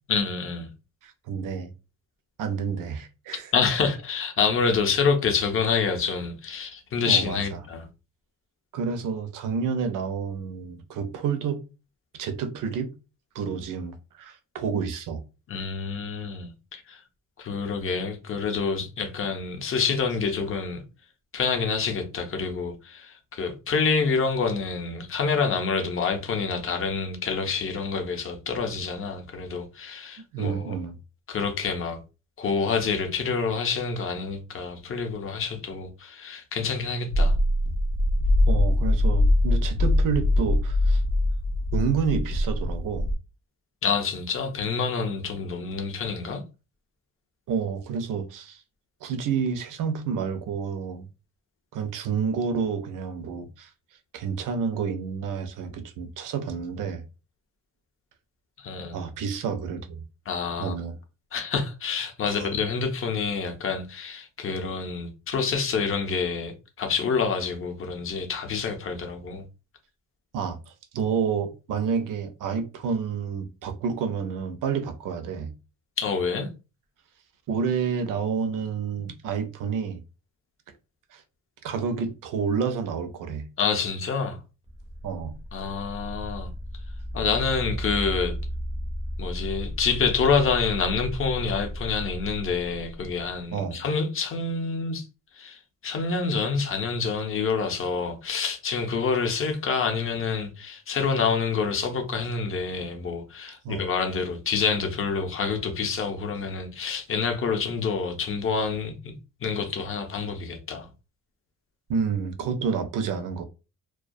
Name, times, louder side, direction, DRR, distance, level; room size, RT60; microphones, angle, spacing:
voice 1, 0.1-0.7 3.5-7.8 15.5-17.0 17.4-20.8 21.3-30.7 31.3-32.0 32.4-37.4 43.8-46.4 58.6-59.0 60.3-60.8 61.3-69.4 76.0-76.5 83.6-84.4 85.5-86.5 87.1-88.4 89.2-95.1 95.4-109.1 109.4-110.9, left 5 dB, 40° left, 0.5 m, -27 dB
voice 2, 1.0-1.7 2.4-3.5 7.1-7.4 8.7-11.6 12.1-12.9 13.3-15.2 30.3-31.0 38.5-41.0 41.7-43.1 47.5-48.6 49.0-51.1 51.7-53.7 54.1-57.0 58.9-60.0 60.6-61.0 62.3-62.5 70.3-70.6 70.9-75.5 77.5-80.0 81.1-81.2 81.6-83.5 85.0-85.4 93.5-93.8 103.6-103.9 111.9-113.4, right 6 dB, 75° right, 0.5 m, -29 dB
sound 1, 37.1-43.1, left 1 dB, 85° left, 0.6 m, -22 dB
sound 2, 84.6-93.4, equal, 20° right, 0.4 m, -35 dB
2.2 x 2.2 x 2.5 m
wide cardioid pair, 175°, 32 cm